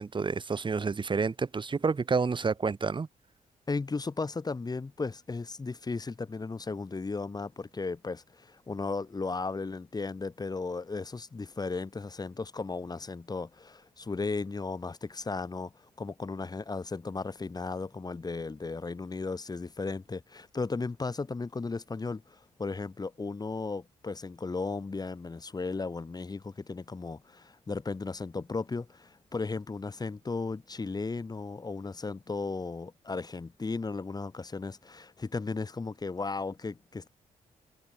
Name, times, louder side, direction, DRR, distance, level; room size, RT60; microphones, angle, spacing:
voice 1, 0.0-3.1, right 4 dB, 35° right, 4.2 m, -29 dB
voice 2, 3.7-37.1, left 3 dB, 30° left, 5.4 m, -35 dB
cardioid pair, 85°, 13 cm